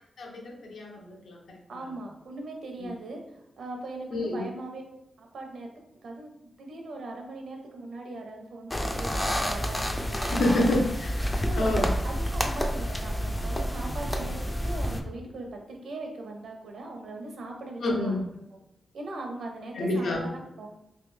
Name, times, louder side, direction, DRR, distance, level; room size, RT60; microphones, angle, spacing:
voice 1, 0.2-1.9 2.8-2.9 4.1-4.5 10.3-11.1 11.5-11.9 17.8-18.2 19.7-20.3, left 1 dB, 85° left, 0 dB, 0.8 m, -28 dB
voice 2, 1.7-4.8 5.2-5.7 6.0-10.7 11.4-18.2 18.9-20.7, right 2 dB, 75° right, 2 dB, 0.7 m, -40 dB
sound 1, 8.7-15.0, equal, 15° left, 0.3 m, -29 dB
3.3 x 2.7 x 3.2 m, 0.87 s
wide cardioid pair, 170°, 0 cm